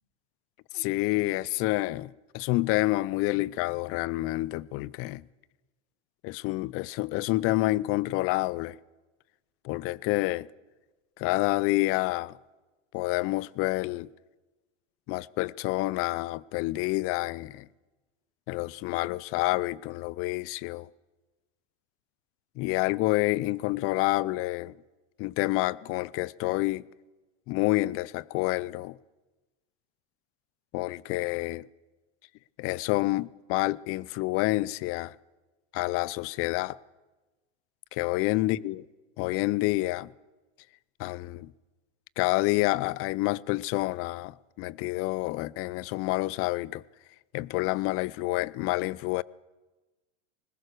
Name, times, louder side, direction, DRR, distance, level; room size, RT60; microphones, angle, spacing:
voice 1, 0.7-5.2 6.2-8.8 9.6-10.5 11.2-12.4 12.9-14.1 15.1-17.7 18.5-20.9 22.6-24.7 25.2-26.9 27.5-29.0 30.7-31.7 32.6-35.1 35.7-36.8 37.9-38.8 39.2-40.1 41.0-41.5 42.2-46.8 47.3-49.2, left 19 dB, 40° left, 0.6 m, -28 dB
20.5 x 19.5 x 6.6 m
hypercardioid pair, 110°, 35 cm